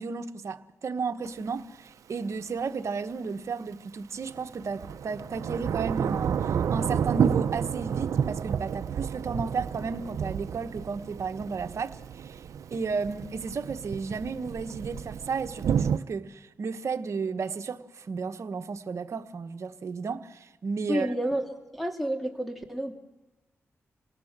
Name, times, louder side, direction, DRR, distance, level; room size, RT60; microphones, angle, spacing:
voice 1, 0.0-12.4 12.7-21.1, right 5 dB, 65° right, 1.4 m, -33 dB
Thunder / Rain, 1.2-1.3 4.3-16.0, right 8 dB, 80° right, 0.7 m, -30 dB
voice 2, 20.9-21.4 21.7-22.9, equal, ahead, 3.5 m, -29 dB
27.5 x 18.5 x 7.6 m
cardioid pair, 60°, 5 cm